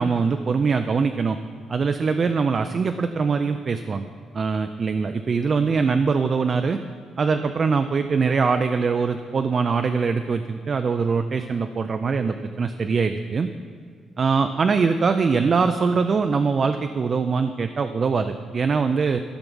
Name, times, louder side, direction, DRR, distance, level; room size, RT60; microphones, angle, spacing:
voice 1, 0.0-1.4 1.7-4.1 4.3-6.8 7.2-13.5 14.2-19.2, right 5 dB, 30° right, 7 dB, 0.3 m, -22 dB
14.0 x 6.0 x 5.4 m, 2.2 s
cardioid pair, 160°, 0 cm